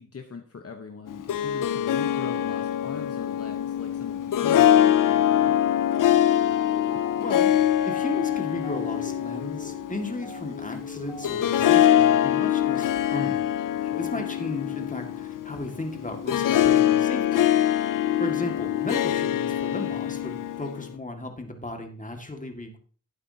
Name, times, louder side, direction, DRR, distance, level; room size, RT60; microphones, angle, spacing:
voice 1, 0.0-5.6 6.9-7.0 13.8-14.2, left 5 dB, 50° left, 4 dB, 1.1 m, -41 dB
Harp, 1.1-20.9, left 11 dB, 80° left, 0.5 m, -24 dB
sound 1, 5.9-11.7, right 2 dB, ahead, 3.5 m, -44 dB
voice 2, 7.2-7.5 7.8-13.4 14.0-17.5 18.2-22.8, left 2 dB, 25° left, 4 dB, 2.0 m, -35 dB
12.0 x 8.6 x 2.9 m, 0.42 s
cardioid pair, 65°, 31 cm